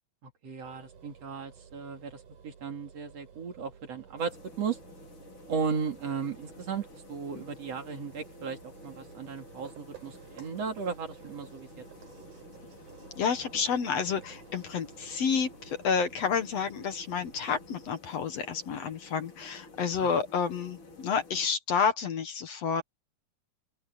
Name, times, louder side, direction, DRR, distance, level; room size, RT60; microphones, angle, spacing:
voice 1, 0.2-4.8 5.5-11.8 20.0-20.1, right 6 dB, 55° right, 3.4 m, -36 dB
sound 1, 0.6-18.0, right 7 dB, 75° right, 5.9 m, -53 dB
sound 2, 4.2-21.5, left 4 dB, 75° left, 6.6 m, -52 dB
voice 2, 13.2-22.8, left 6 dB, 60° left, 2.3 m, -30 dB
open air
omnidirectional pair, 3.6 m